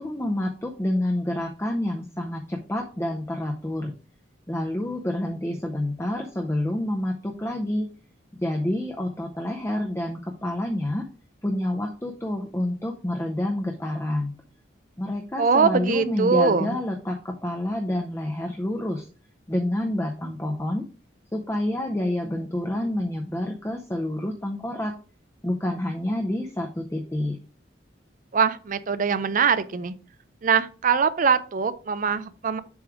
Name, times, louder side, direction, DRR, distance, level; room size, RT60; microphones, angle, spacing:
voice 1, 0.0-3.9 4.5-7.9 8.4-11.0 11.4-14.3 15.0-19.1 19.5-20.8 21.3-24.9 25.4-27.4, left 1 dB, 15° left, 0.6 m, -28 dB
voice 2, 15.4-16.8 28.3-29.9 30.4-32.6, right 5 dB, 45° right, 0.5 m, -22 dB
7.1 x 3.2 x 4.8 m
head